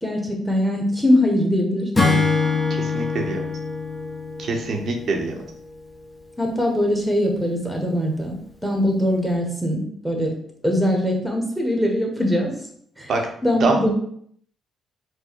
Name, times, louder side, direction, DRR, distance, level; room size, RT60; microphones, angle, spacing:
voice 1, 0.0-2.2 6.4-8.3 8.6-10.3 10.6-12.5 13.0-13.1 13.4-13.9, left 1 dB, 5° right, 1 dB, 1.2 m, -22 dB
Acoustic guitar / Strum, 2.0-5.4, left 4 dB, 20° left, 1.0 m, -23 dB
voice 2, 2.7-3.4 4.4-5.4 13.1-13.2 13.6-13.8, right 3 dB, 60° right, 2 dB, 0.9 m, -24 dB
4.6 x 2.2 x 4.5 m, 0.65 s
cardioid pair, 90°, 0 cm